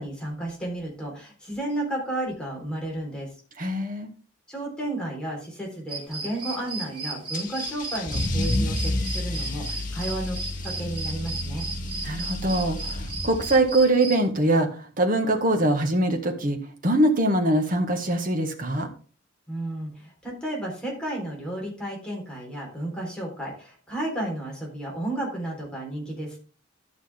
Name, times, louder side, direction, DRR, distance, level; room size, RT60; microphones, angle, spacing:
voice 1, 0.0-3.3 4.5-11.7 19.5-26.4, right 1 dB, 5° left, -3 dB, 3.8 m, -32 dB
voice 2, 3.6-4.1 12.0-16.6 16.8-18.9, right 1 dB, 45° right, 4 dB, 1.7 m, -23 dB
sound 1, 5.9-14.2, right 3 dB, 25° right, 2.6 m, -36 dB
Car / Engine starting / Accelerating revving vroom, 7.3-13.8, left 1 dB, 45° left, 1.6 m, -30 dB
12.0 x 6.2 x 3.5 m, 0.39 s
head